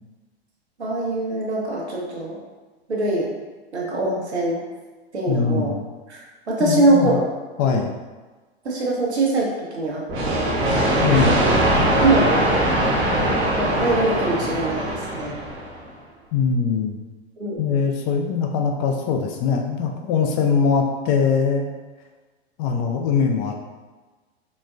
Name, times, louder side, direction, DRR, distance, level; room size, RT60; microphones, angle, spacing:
voice 1, 0.8-2.4 2.9-3.3 3.7-4.6 5.1-5.8 6.1-6.2 6.5-7.3 8.6-10.9 11.2-11.5 12.0-12.5 13.5-15.4 17.4-17.8, right 2 dB, 85° right, -3 dB, 0.9 m, -23 dB
voice 2, 5.3-5.8 6.6-7.2 7.6-7.9 11.0-11.4 16.3-17.0 17.6-21.7 22.6-23.6, left 5 dB, 35° left, 2 dB, 0.4 m, -21 dB
sound 1, 10.1-15.8, right 1 dB, 35° right, 0.8 m, -21 dB
4.1 x 2.2 x 2.4 m, 1.3 s
figure-of-eight pair, 95°, 32 cm